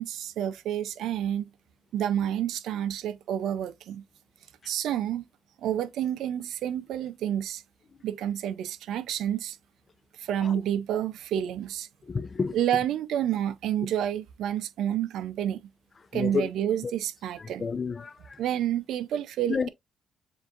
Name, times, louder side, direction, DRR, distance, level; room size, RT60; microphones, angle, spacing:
voice 1, 0.0-1.5 1.9-4.0 4.7-5.3 5.6-7.6 8.0-9.6 10.2-11.9 12.5-15.6 16.1-17.7 18.4-19.7, right 10 dB, 80° right, 0.4 m, -29 dB
voice 2, 12.0-12.6 16.1-16.5 17.4-18.4 19.5-19.7, left 5 dB, 35° left, 0.4 m, -30 dB
7.2 x 2.6 x 2.4 m
cardioid pair, 90°, 0 cm